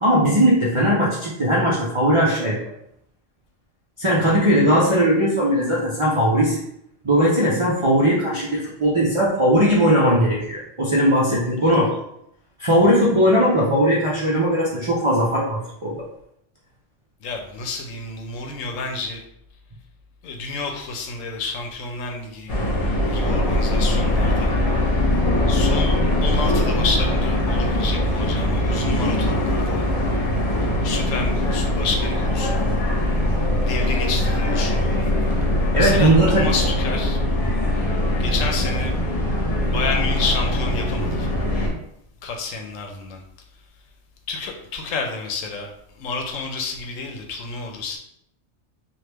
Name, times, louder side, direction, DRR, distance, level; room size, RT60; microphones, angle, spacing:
voice 1, 0.0-2.6 4.0-6.6 7.0-12.0 12.6-16.0 35.7-36.5, equal, 45° right, -7 dB, 0.4 m, -19 dB
voice 2, 17.2-19.2 20.2-22.5 23.1-24.5 25.5-29.8 30.8-32.6 33.6-35.1 35.7-37.2 38.2-39.0 39.6-41.3 42.2-43.2 44.3-48.0, left 4 dB, 85° left, 3 dB, 1.0 m, -30 dB
sound 1, 22.5-41.7, left 1 dB, 40° left, 0.6 m, -21 dB
3.0 x 2.5 x 3.3 m, 0.75 s
omnidirectional pair, 1.3 m